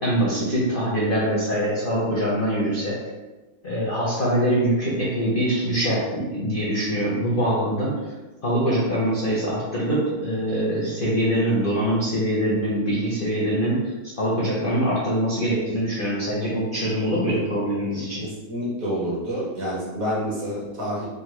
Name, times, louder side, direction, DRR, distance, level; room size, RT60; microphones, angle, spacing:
voice 1, 0.0-3.0 3.6-8.1 8.4-18.2, right 1 dB, 60° left, -6 dB, 0.5 m, -23 dB
voice 2, 18.5-21.1, equal, 55° right, -5 dB, 1.3 m, -28 dB
3.9 x 2.2 x 3.0 m, 1.1 s
omnidirectional pair, 1.8 m